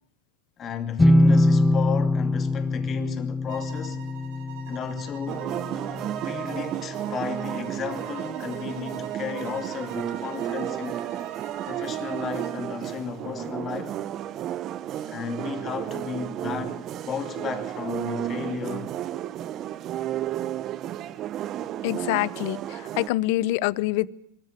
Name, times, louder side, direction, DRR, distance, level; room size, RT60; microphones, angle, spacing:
voice 1, 0.6-4.1 4.7-5.5 6.2-11.1 11.7-14.0 15.0-19.0 21.1-21.2, left 6 dB, 30° left, 2.6 m, -34 dB
sound 1, 1.0-6.6, left 1 dB, 10° left, 1.0 m, -23 dB
sound 2, 3.5-12.6, right 9 dB, 65° right, 4.8 m, -45 dB
sound 3, 5.3-23.1, right 11 dB, 35° right, 0.9 m, -32 dB
voice 2, 21.8-22.6 23.0-24.1, left 17 dB, 60° left, 0.8 m, -25 dB
24.0 x 14.0 x 9.1 m
supercardioid pair, 130°, 0 cm